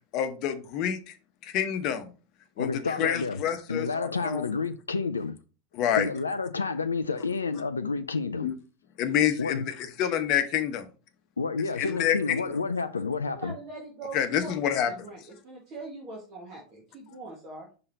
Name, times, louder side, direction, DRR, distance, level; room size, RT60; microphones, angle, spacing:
voice 1, 0.1-1.2 1.4-2.1 2.6-4.5 5.7-6.1 8.4-8.5 9.0-10.9 11.8-12.5 14.1-15.1, left 9 dB, 45° left, 0.9 m, -28 dB
voice 2, 2.6-3.4 3.7-5.4 6.0-8.5 9.4-9.7 11.4-13.6, left 4 dB, 80° left, 0.4 m, -30 dB
voice 3, 13.4-14.5 14.8-17.7, right 3 dB, 40° right, 1.8 m, -42 dB
5.7 x 3.8 x 4.5 m
figure-of-eight pair, 85°, 0 cm